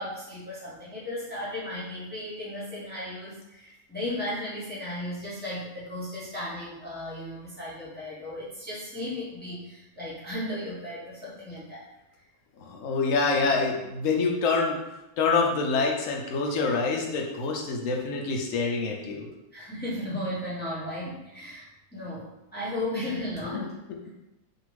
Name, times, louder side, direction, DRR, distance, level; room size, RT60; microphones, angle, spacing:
voice 1, 0.0-11.8 19.5-21.7 21.9-23.7, left 1 dB, 10° left, -9 dB, 0.6 m, -35 dB
voice 2, 12.6-14.8 15.2-19.3 23.5-23.7, left 4 dB, 70° left, 1 dB, 0.9 m, -26 dB
2.7 x 2.5 x 3.0 m, 0.93 s
omnidirectional pair, 1.5 m